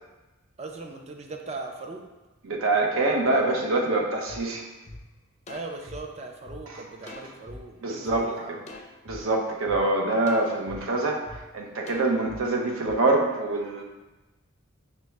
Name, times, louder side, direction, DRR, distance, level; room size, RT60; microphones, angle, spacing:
voice 1, 0.6-2.1 5.5-8.7, right 3 dB, 30° right, 2 dB, 0.4 m, -39 dB
voice 2, 2.4-4.6 6.7-6.8 7.8-8.3 9.0-13.8, right 2 dB, 70° right, 1 dB, 0.6 m, -25 dB
sound 1, 4.3-4.4 4.9-5.0 5.5-6.6 7.1-7.6 8.1-8.2 8.7-9.2 9.7-9.8 10.3-10.8 11.3-11.4 11.9-12.4 12.9-13.0, left 2 dB, 30° left, 0.5 m, -43 dB
5.8 x 2.0 x 3.2 m, 1.1 s
head